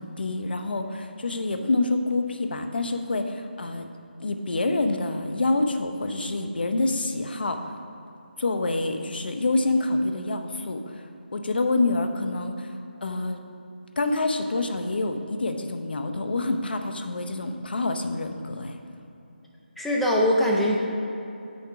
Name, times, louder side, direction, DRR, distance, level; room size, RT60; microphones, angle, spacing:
voice 1, 0.0-3.9 4.2-7.6 8.4-10.8 11.3-12.7 13.0-13.4 14.0-18.8, left 2 dB, 65° left, 6 dB, 0.7 m, -27 dB
voice 2, 19.8-20.8, equal, ahead, -4 dB, 0.4 m, -22 dB
8.6 x 3.6 x 5.7 m, 2.8 s
figure-of-eight pair, 165°, 6 cm